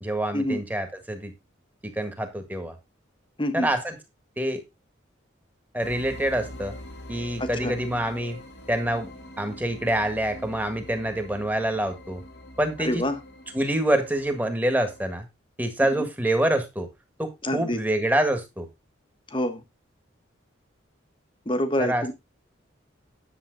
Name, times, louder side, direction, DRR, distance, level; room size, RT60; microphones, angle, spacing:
voice 1, 0.0-1.3 1.8-2.7 3.5-3.9 4.4-4.6 5.7-6.7 7.1-8.4 8.7-9.1 9.4-12.2 12.6-13.0 13.5-15.2 15.6-16.9 17.2-18.7 21.8-22.0, right 1 dB, 10° right, 1.7 m, -26 dB
voice 2, 3.4-3.7 7.4-7.8 12.8-13.2 16.0-16.1 17.4-17.8 19.3-19.6 21.4-22.1, left 1 dB, 25° left, 1.2 m, -27 dB
sound 1, 5.8-15.1, left 1 dB, 55° left, 1.4 m, -44 dB
10.5 x 7.4 x 3.9 m
head